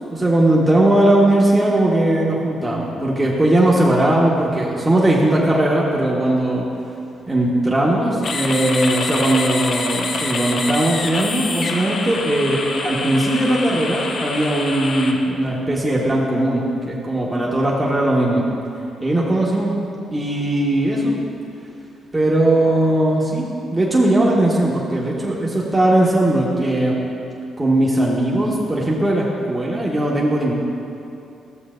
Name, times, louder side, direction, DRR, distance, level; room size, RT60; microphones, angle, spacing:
voice 1, 0.1-6.6 7.3-18.4 19.0-19.7 20.1-21.2 22.1-23.5 23.7-27.0 27.6-30.5, right 1 dB, 20° right, -4 dB, 1.4 m, -18 dB
sound 1, 8.2-15.1, left 3 dB, 60° left, 0.8 m, -26 dB
13.0 x 7.1 x 2.6 m, 2.7 s
hypercardioid pair, 45°, 0 cm